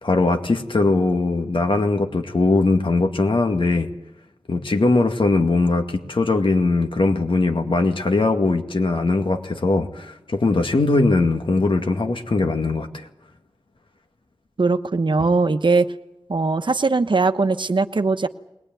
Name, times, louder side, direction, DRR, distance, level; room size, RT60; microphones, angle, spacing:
voice 1, 0.0-3.9 4.5-13.1, left 3 dB, 70° left, 5 dB, 2.1 m, -20 dB
voice 2, 14.6-15.9 16.3-18.3, right 3 dB, 60° right, 10 dB, 1.0 m, -20 dB
21.5 x 19.0 x 9.2 m, 0.89 s
wide cardioid pair, 60°, 9 cm